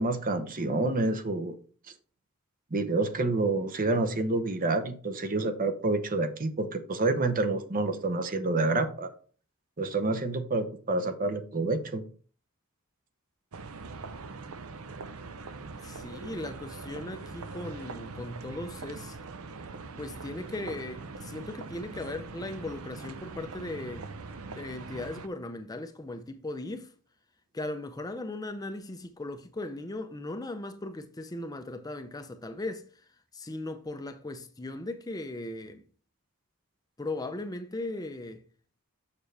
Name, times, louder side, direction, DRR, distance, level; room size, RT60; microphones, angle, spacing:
voice 1, 0.0-1.6 2.7-9.1 9.8-12.0, right 2 dB, 40° right, 0.8 m, -28 dB
sound 1, 13.5-25.3, right 3 dB, 70° right, 0.7 m, -42 dB
voice 2, 15.8-19.2 20.0-24.1 24.5-26.9 27.5-33.0 33.3-35.9 37.0-38.4, left 2 dB, 15° left, 0.5 m, -38 dB
7.0 x 6.5 x 3.3 m
head